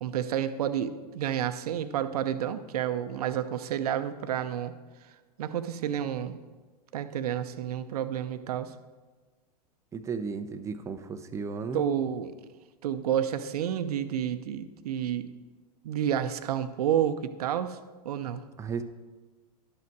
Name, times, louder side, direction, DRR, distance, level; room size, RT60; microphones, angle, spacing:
voice 1, 0.0-4.7 5.4-6.4 6.9-8.7 11.7-12.3 12.8-15.3 15.8-17.8 18.0-18.5, right 10 dB, 70° right, 11 dB, 0.7 m, -30 dB
voice 2, 9.9-11.8 18.6-18.8, right 5 dB, 15° right, 9 dB, 0.5 m, -34 dB
11.0 x 5.8 x 4.6 m, 1.3 s
hypercardioid pair, 110°, 20 cm